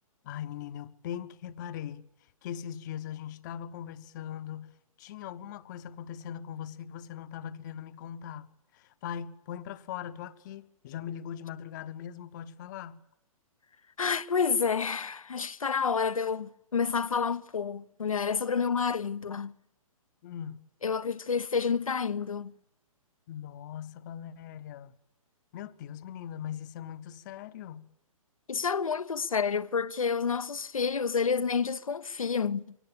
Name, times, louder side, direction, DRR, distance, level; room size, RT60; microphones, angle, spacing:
voice 1, 0.2-2.1 2.4-13.0 20.2-20.7 23.3-24.9 25.5-27.9, left 9 dB, 30° left, 1.0 m, -40 dB
voice 2, 14.0-19.5 20.8-22.5 28.5-32.8, left 6 dB, 70° left, 0.9 m, -29 dB
23.0 x 18.5 x 8.8 m
figure-of-eight pair, 125°, 18 cm